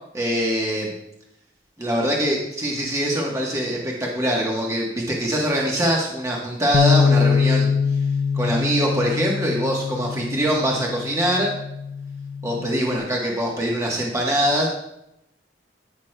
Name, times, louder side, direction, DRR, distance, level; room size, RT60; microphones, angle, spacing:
voice 1, 0.1-0.9 1.8-7.7 8.3-11.5 12.4-14.7, equal, 20° right, -2 dB, 1.1 m, -23 dB
Bass guitar, 6.7-13.0, left 6 dB, 50° left, 0.4 m, -23 dB
13.0 x 6.2 x 2.2 m, 0.82 s
head